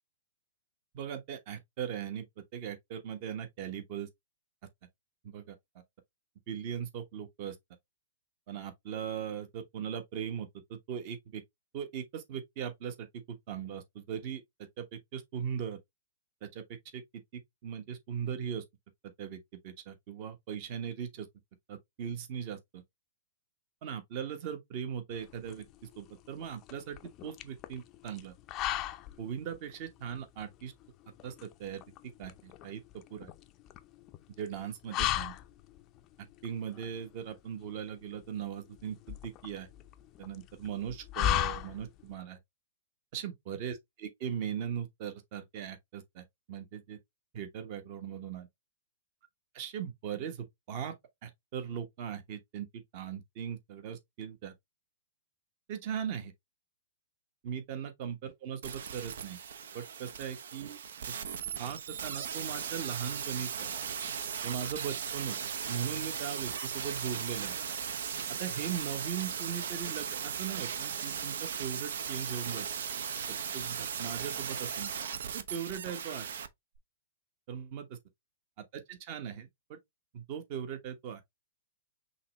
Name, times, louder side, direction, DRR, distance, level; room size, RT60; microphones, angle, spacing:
voice 1, 0.9-2.2 2.5-4.1 5.2-5.5 6.5-7.6 8.5-11.4 11.7-15.8 16.4-16.6 16.9-17.0 17.3-18.6 19.2-21.3 21.7-22.8 23.8-25.6 26.0-28.3 29.2-30.7 31.2-31.8 32.2-32.8 33.1-33.3 34.4-35.3 36.4-39.7 40.2-42.4 43.1-47.0 47.3-48.5 49.5-50.9 51.2-54.5 55.7-56.3 57.4-59.4 59.7-60.8 61.6-63.7 64.4-65.4 65.7-67.5 68.4-72.7 73.5-74.9 75.3-76.3 77.5-78.0 78.7-79.8 80.1-81.2, right 8 dB, 40° right, 1.2 m, -39 dB
sound 1, 25.1-42.1, left 13 dB, 25° left, 0.5 m, -38 dB
sound 2, 58.6-76.5 76.8-76.9, right 7 dB, 75° right, 0.7 m, -37 dB
5.6 x 3.1 x 3.0 m
hypercardioid pair, 155°, 0 cm